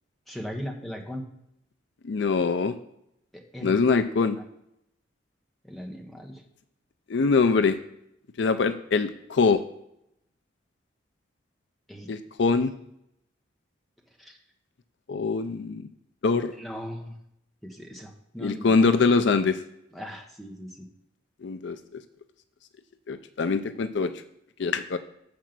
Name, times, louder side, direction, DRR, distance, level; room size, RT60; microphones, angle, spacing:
voice 1, 0.3-1.3 3.3-3.8 4.3-4.4 5.6-6.4 11.9-12.1 12.5-12.7 14.2-14.4 16.6-17.1 17.6-18.8 19.9-20.9, equal, ahead, 1 dB, 1.1 m, -38 dB
voice 2, 2.0-2.8 3.6-4.4 7.1-7.8 8.4-9.6 12.1-12.7 15.1-15.9 16.2-16.5 18.4-19.6 21.4-22.0 23.1-24.1 24.6-25.0, left 4 dB, 65° left, 10 dB, 0.5 m, -23 dB
7.3 x 5.1 x 6.0 m, 0.77 s
head